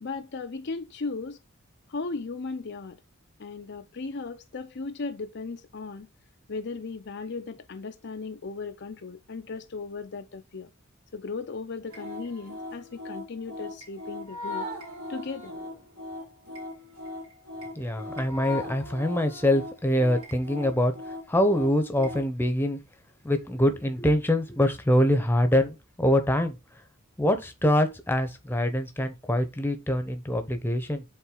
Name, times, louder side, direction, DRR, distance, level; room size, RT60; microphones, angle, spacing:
voice 1, 0.0-1.4 1.9-3.0 3.4-6.1 6.5-10.7 11.1-14.7 15.1-15.5, left 4 dB, 50° left, 0.6 m, -36 dB
sound 1, 11.9-22.3, left 2 dB, 90° right, 2.9 m, -39 dB
voice 2, 17.7-22.8 23.2-26.6 27.2-31.0, left 1 dB, 10° left, 0.9 m, -24 dB
7.3 x 3.9 x 3.8 m
head